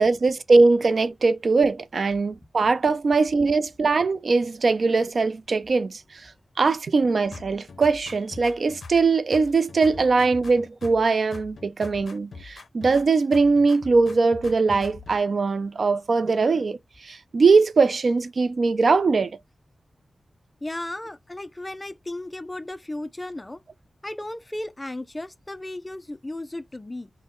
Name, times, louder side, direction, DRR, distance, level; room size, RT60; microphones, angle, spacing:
voice 1, 0.0-6.3 6.6-16.8 17.0-19.3, right 4 dB, 55° right, 0.3 m, -21 dB
sound 1, 7.3-9.1 9.3-11.1 11.3-13.1 13.3-15.2, left 4 dB, 80° left, 0.5 m, -42 dB
voice 2, 20.6-23.6 24.0-27.1, left 1 dB, 15° left, 0.4 m, -35 dB
3.7 x 2.1 x 3.6 m
wide cardioid pair, 145°, 0 cm